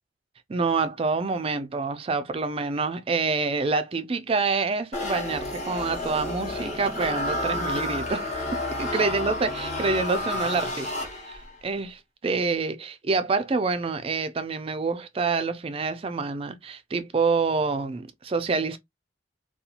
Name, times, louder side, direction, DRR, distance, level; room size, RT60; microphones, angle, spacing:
voice 1, 0.5-10.9 11.3-18.8, right 4 dB, 30° right, 0.4 m, -27 dB
sound 1, 4.9-11.5, left 1 dB, 40° left, 0.9 m, -30 dB
2.8 x 2.3 x 2.3 m
head